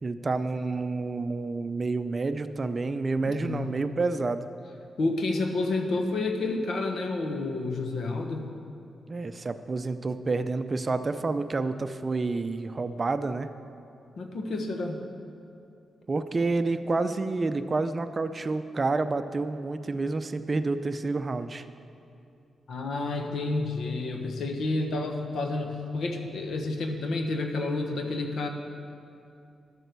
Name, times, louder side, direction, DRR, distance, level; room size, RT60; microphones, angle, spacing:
voice 1, 0.0-4.5 9.1-13.5 16.1-21.6, right 3 dB, 35° right, 11 dB, 0.5 m, -29 dB
voice 2, 3.2-3.7 5.0-8.5 14.2-15.1 22.7-28.5, left 2 dB, 70° left, 4 dB, 1.2 m, -30 dB
11.5 x 7.8 x 6.7 m, 2.6 s
cardioid pair, 75°, 0 cm